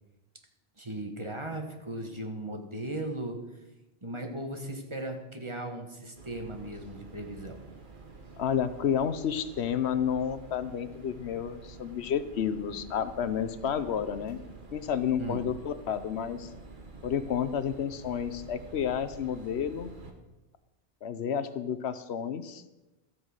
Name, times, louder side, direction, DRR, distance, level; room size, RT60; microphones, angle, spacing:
voice 1, 0.8-3.4 4.0-7.6 15.2-15.4, right 1 dB, 25° right, 4 dB, 1.5 m, -37 dB
sound 1, 6.2-20.1, right 3 dB, 50° right, 1.5 m, -48 dB
voice 2, 8.4-14.4 14.7-16.5 17.0-20.0 21.0-22.6, left 8 dB, 75° left, 12 dB, 1.0 m, -31 dB
13.0 x 8.9 x 6.5 m, 1.0 s
omnidirectional pair, 1.1 m